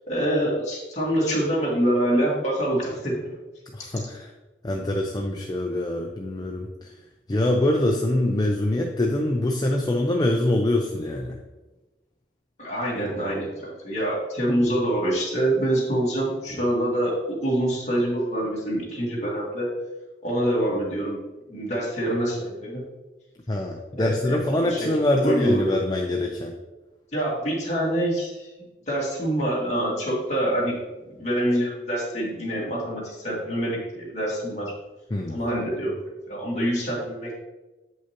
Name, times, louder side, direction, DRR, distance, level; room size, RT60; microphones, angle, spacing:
voice 1, 0.1-3.3 12.6-17.2 17.4-19.7 20.2-21.2 21.5-22.8 24.0-24.9 25.2-25.6 27.1-28.5 28.9-30.8 31.1-34.7 35.3-36.0 36.3-37.3, right 1 dB, 40° left, -5 dB, 2.3 m, -25 dB
voice 2, 3.7-4.3 4.6-6.9 7.3-11.4 23.5-26.5 35.1-35.4, left 1 dB, 25° left, 1 dB, 0.5 m, -24 dB
8.0 x 5.6 x 2.9 m, 1.1 s
head